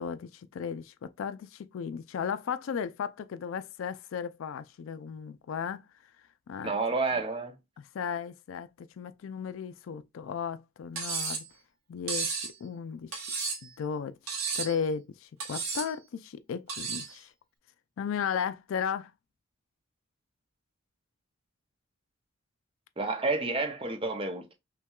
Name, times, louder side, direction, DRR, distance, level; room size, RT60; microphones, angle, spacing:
voice 1, 0.0-5.9 6.5-6.7 7.8-11.5 11.9-13.3 13.6-17.3 18.0-19.1, left 7 dB, 70° left, 0.3 m, -35 dB
voice 2, 6.6-7.5 23.0-24.5, right 3 dB, 25° right, 0.5 m, -30 dB
Cutlery silverware, 11.0-11.5 12.1-12.5 13.1-13.7 14.3-14.8 15.4-15.9 16.7-17.1, right 5 dB, 85° right, 1.0 m, -33 dB
5.5 x 2.2 x 2.3 m
head